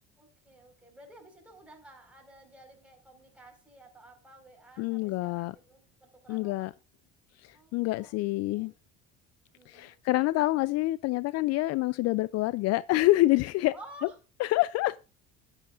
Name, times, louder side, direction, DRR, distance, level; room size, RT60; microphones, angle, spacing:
voice 1, 0.2-6.7 7.5-8.2 8.5-8.7 9.5-10.0 13.7-14.2, right 1 dB, 5° right, 4.9 m, -53 dB
voice 2, 4.8-5.5 6.3-6.7 7.4-8.7 9.7-13.7 14.4-15.0, left 18 dB, 60° left, 0.4 m, -27 dB
13.5 x 10.0 x 2.5 m
cardioid pair, 120°, 29 cm